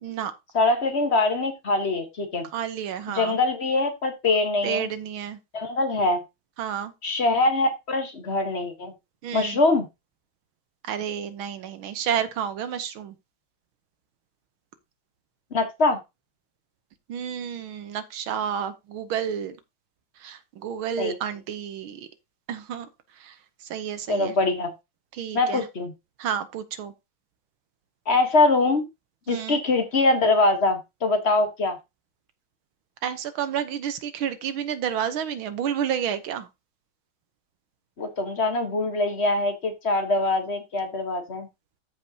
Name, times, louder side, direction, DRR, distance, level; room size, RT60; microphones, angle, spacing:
voice 1, 0.0-0.3 2.5-3.4 4.6-5.4 6.6-6.9 9.2-9.6 10.8-13.2 17.1-19.6 20.2-22.1 22.5-22.9 23.2-23.4 23.7-24.4 25.1-25.7 26.2-26.9 29.3-29.6 33.0-36.5, right 9 dB, 75° right, 1.8 m, -30 dB
voice 2, 0.5-2.4 3.1-4.9 5.5-6.2 7.0-8.9 9.3-9.9 15.5-16.0 21.0-21.2 24.1-24.7 25.3-25.9 28.1-28.9 29.3-31.8 38.0-41.5, left 2 dB, 35° left, 1.4 m, -23 dB
14.0 x 5.3 x 2.8 m
omnidirectional pair, 2.3 m